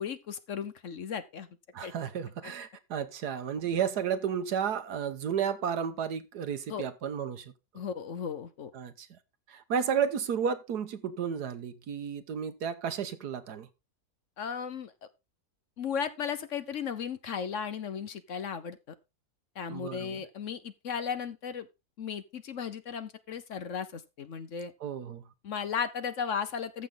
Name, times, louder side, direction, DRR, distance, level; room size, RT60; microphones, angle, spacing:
voice 1, 0.0-1.5 1.8-1.9 2.4-2.5 6.7-6.9 7.7-8.7 14.4-14.9 15.8-18.8 19.6-21.7 22.0-24.7 25.4-26.9, left 7 dB, 60° left, 1.1 m, -35 dB
voice 2, 1.7-7.5 8.7-9.1 9.5-13.7 19.7-20.2 24.8-25.3, right 7 dB, 85° right, 1.6 m, -32 dB
14.0 x 6.2 x 3.8 m
omnidirectional pair, 1.7 m